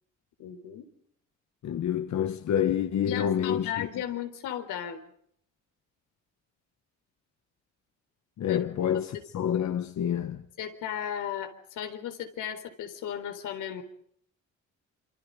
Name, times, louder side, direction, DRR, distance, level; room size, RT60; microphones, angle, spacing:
voice 1, 0.4-0.9 3.1-5.1 8.5-8.6 9.1-9.2 10.6-13.8, left 10 dB, 85° left, 4.1 m, -35 dB
voice 2, 1.6-3.9 8.4-10.4, left 9 dB, 65° left, 1.5 m, -28 dB
28.5 x 25.5 x 5.3 m
cardioid pair, 90°, 30 cm